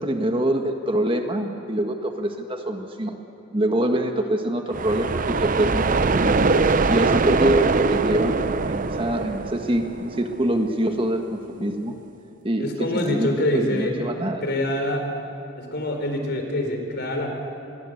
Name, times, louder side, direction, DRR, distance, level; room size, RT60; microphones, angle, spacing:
voice 1, 0.0-3.2 3.5-6.4 6.9-11.9 12.4-12.6 12.9-14.4, right 1 dB, 25° right, 4 dB, 1.5 m, -25 dB
sound 1, 4.7-10.5, right 3 dB, 40° right, 0.7 m, -22 dB
voice 2, 12.6-13.9 14.4-15.1 15.6-17.3, left 1 dB, 55° left, 4 dB, 4.2 m, -25 dB
27.0 x 21.5 x 8.0 m, 2.7 s
head